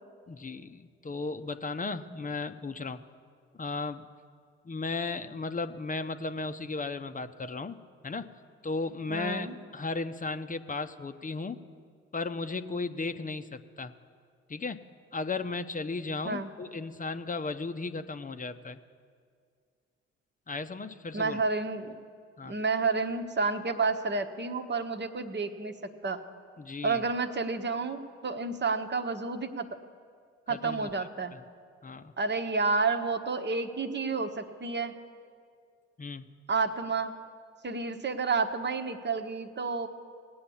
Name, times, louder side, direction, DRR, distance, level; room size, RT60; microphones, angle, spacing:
voice 1, 0.3-3.0 3.6-4.1 4.6-7.8 8.0-8.3 8.6-9.5 9.7-11.6 12.1-13.9 14.5-14.8 15.1-18.8 20.5-21.4 22.4-22.6 26.6-27.0 30.5-31.1 31.3-31.4 31.8-32.1 36.0-36.2, left 3 dB, 25° left, 9 dB, 0.8 m, -35 dB
voice 2, 9.1-9.5 16.2-16.5 21.1-22.0 22.4-25.8 26.0-26.2 26.8-29.7 30.5-31.4 32.2-34.9 36.5-37.2 37.6-39.9, right 4 dB, 35° right, 7 dB, 1.2 m, -30 dB
18.0 x 8.6 x 7.1 m, 2.1 s
hypercardioid pair, 50°, 31 cm